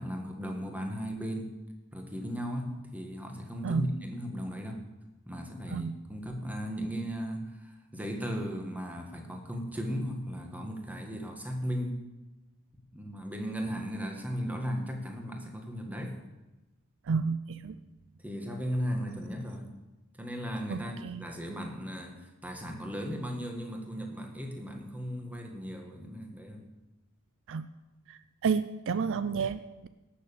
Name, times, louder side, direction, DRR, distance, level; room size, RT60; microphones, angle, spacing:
voice 1, 0.0-1.6 1.9-4.9 5.3-12.0 12.9-16.2 17.7-17.9 18.2-19.7 20.2-26.7, equal, 5° right, 2 dB, 1.7 m, -36 dB
voice 2, 17.1-17.8 20.7-21.2 27.5-27.7 28.1-29.9, right 5 dB, 60° right, 13 dB, 0.4 m, -31 dB
18.0 x 6.7 x 6.9 m, 1.1 s
head